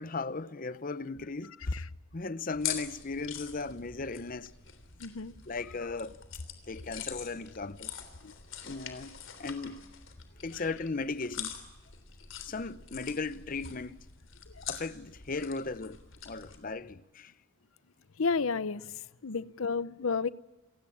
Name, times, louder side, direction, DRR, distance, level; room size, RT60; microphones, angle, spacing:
voice 1, 0.0-1.8 2.1-4.5 5.5-6.2 6.7-7.9 8.6-9.8 10.4-11.6 12.4-14.0 14.6-16.0 16.2-17.3, left 3 dB, 40° left, 0.8 m, -36 dB
sound 1, 2.5-16.6, left 9 dB, 70° left, 3.3 m, -44 dB
voice 2, 5.0-5.3 8.2-8.3 10.5-10.7 14.5-14.6 18.2-20.3, left 4 dB, 85° left, 0.8 m, -32 dB
28.5 x 17.0 x 8.7 m
head